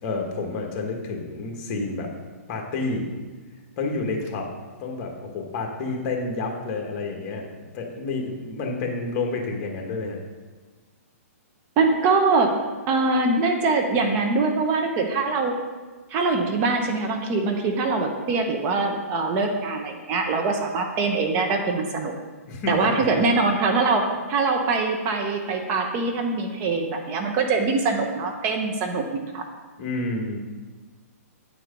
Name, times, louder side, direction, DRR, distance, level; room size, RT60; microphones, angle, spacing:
voice 1, 0.0-2.1 2.5-3.1 3.8-4.5 4.8-7.5 7.7-10.2 22.5-23.2 29.8-30.4, left 3 dB, 35° left, 1 dB, 1.5 m, -29 dB
voice 2, 11.8-12.5 12.9-15.5 16.1-22.1 22.7-29.4, right 3 dB, 30° right, 4 dB, 0.8 m, -23 dB
9.3 x 4.6 x 5.2 m, 1.4 s
hypercardioid pair, 145°, 8 cm